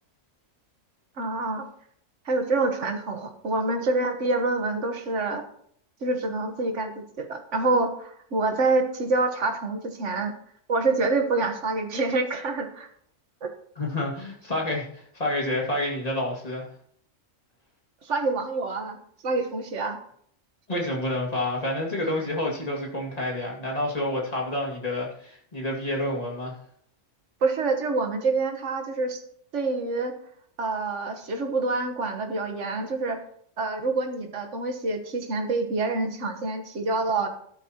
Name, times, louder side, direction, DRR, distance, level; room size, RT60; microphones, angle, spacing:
voice 1, 1.2-1.7 2.2-5.4 6.0-10.3 10.7-12.9 13.4-13.5 18.0-19.0 19.2-20.0 27.4-29.2 29.5-30.1 30.6-33.2 33.6-37.3, right 3 dB, 65° right, 5 dB, 1.6 m, -26 dB
voice 2, 13.8-16.7 20.7-26.5, left 1 dB, 30° left, -2 dB, 2.3 m, -29 dB
13.0 x 11.0 x 2.9 m, 0.65 s
omnidirectional pair, 1.3 m